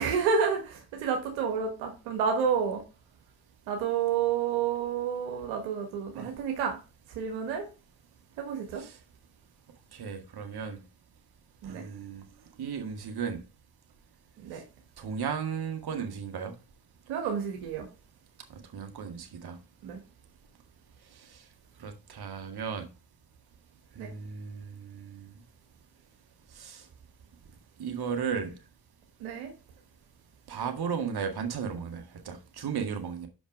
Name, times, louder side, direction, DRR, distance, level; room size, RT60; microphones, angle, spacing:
voice 1, 0.0-2.8 3.7-6.8 7.1-7.7 8.4-8.8 11.6-11.8 14.4-14.6 17.1-17.9 19.8-20.0 24.0-24.1 29.2-29.5, right 6 dB, 85° right, 1.5 m, -29 dB
voice 2, 9.9-10.8 11.6-12.2 12.6-13.4 15.0-16.5 18.5-19.6 21.1-21.4 21.8-22.9 23.9-25.3 26.5-26.8 27.8-28.5 30.5-33.3, right 6 dB, 55° right, 1.9 m, -35 dB
6.1 x 5.2 x 5.1 m
hypercardioid pair, 45°, 45 cm